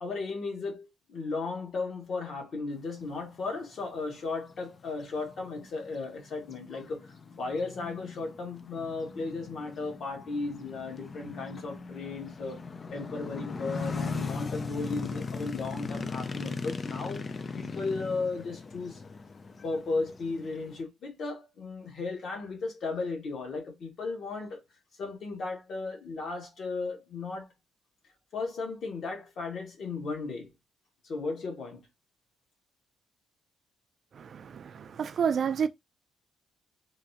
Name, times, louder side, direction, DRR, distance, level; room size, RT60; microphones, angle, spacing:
voice 1, 0.0-12.6 12.9-17.2 17.5-19.0 19.6-24.6 25.0-27.5 28.3-30.5 31.0-31.8, left 3 dB, 60° left, 1.5 m, -35 dB
sound 1, 3.8-3.9 4.4-20.8, left 4 dB, 35° left, 0.4 m, -39 dB
voice 2, 34.1-35.7, right 7 dB, 55° right, 0.4 m, -30 dB
3.7 x 2.3 x 2.8 m
cardioid pair, 90°, 0 cm